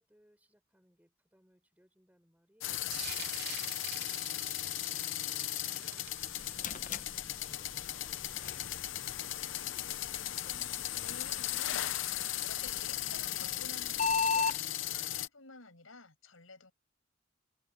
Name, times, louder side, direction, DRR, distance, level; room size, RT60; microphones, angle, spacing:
voice 1, 0.0-3.6 4.4-6.9 7.3-10.2, equal, 10° right, 6.7 m, -69 dB
sound 1, 2.6-15.3, left 13 dB, 65° left, 0.7 m, -37 dB
sound 2, 2.9-8.2, right 10 dB, 55° right, 3.1 m, -47 dB
sound 3, 6.1-14.6, left 5 dB, 40° left, 1.0 m, -39 dB
voice 2, 11.0-16.7, left 3 dB, 85° left, 7.1 m, -53 dB
open air
head